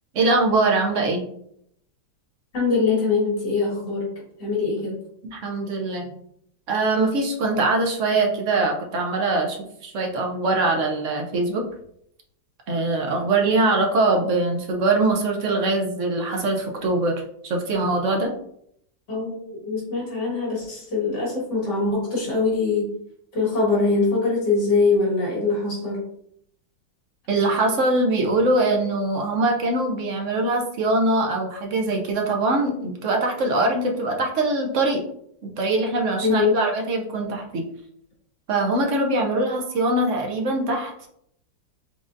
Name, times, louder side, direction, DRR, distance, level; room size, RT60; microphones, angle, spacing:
voice 1, 0.1-1.2 5.2-6.1 6.7-9.6 9.8-11.6 12.7-18.3 27.3-35.0 35.4-37.6 38.5-40.9, right 2 dB, 55° right, 1 dB, 0.9 m, -22 dB
voice 2, 2.5-4.1 4.4-5.0 19.1-22.9 23.3-26.0 36.2-36.6, left 4 dB, 70° left, -5 dB, 2.4 m, -23 dB
4.8 x 3.9 x 2.6 m, 0.71 s
omnidirectional pair, 1.9 m